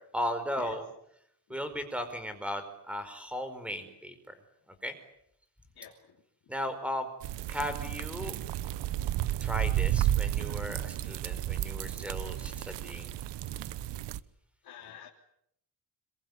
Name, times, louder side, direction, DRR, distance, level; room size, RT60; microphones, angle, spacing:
voice 1, 0.1-0.9 1.5-4.3 4.8-4.9 6.5-7.1 7.5-8.4 9.4-13.1, equal, 5° right, 9 dB, 4.7 m, -36 dB
sound 1, 7.2-14.2, right 12 dB, 90° right, 1.1 m, -32 dB
voice 2, 14.6-15.1, left 9 dB, 60° left, -1 dB, 3.4 m, -48 dB
27.0 x 23.0 x 9.6 m, 0.73 s
wide cardioid pair, 175°, 41 cm